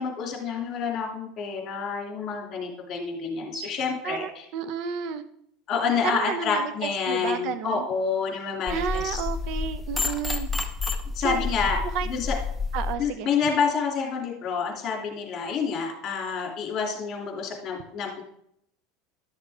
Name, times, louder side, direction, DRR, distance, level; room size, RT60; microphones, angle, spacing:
voice 1, 0.0-4.4 5.7-9.2 11.1-11.8 12.1-12.3 13.0-18.2, left 5 dB, 40° left, 1 dB, 2.8 m, -28 dB
voice 2, 4.0-5.2 6.0-7.9 8.7-10.5 11.2-11.5 11.9-12.1 12.7-13.3, right 8 dB, 60° right, 12 dB, 0.7 m, -31 dB
sound 1, 8.7-13.0, left 4 dB, ahead, 0.9 m, -30 dB
11.5 x 6.6 x 3.6 m, 0.71 s
supercardioid pair, 125°, 0 cm